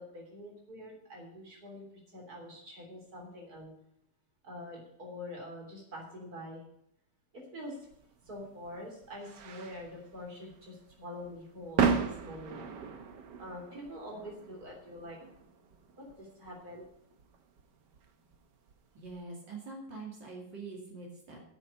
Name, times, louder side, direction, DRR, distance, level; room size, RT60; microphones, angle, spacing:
voice 1, 0.0-1.8 2.1-3.7 4.4-6.6 7.5-7.8 8.2-13.0 13.4-15.5 15.9-16.9, left 1 dB, 55° right, 0 dB, 4.1 m, -45 dB
sound 1, 7.9-19.2, right 6 dB, 75° right, 1.7 m, -37 dB
voice 2, 18.9-21.4, right 3 dB, 90° right, -2 dB, 3.2 m, -44 dB
9.5 x 7.2 x 8.3 m, 0.74 s
omnidirectional pair, 1.9 m